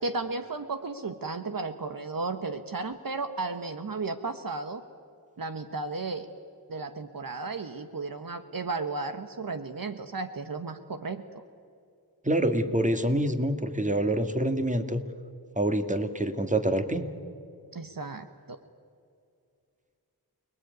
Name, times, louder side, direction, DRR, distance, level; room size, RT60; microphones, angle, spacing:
voice 1, 0.0-4.8 5.4-6.3 6.7-11.4 17.7-18.6, right 3 dB, 60° right, 8 dB, 1.4 m, -34 dB
voice 2, 12.2-15.0 15.6-17.1, right 1 dB, 20° right, 8 dB, 2.2 m, -26 dB
29.0 x 20.0 x 9.5 m, 2.4 s
cardioid pair, 45°, 39 cm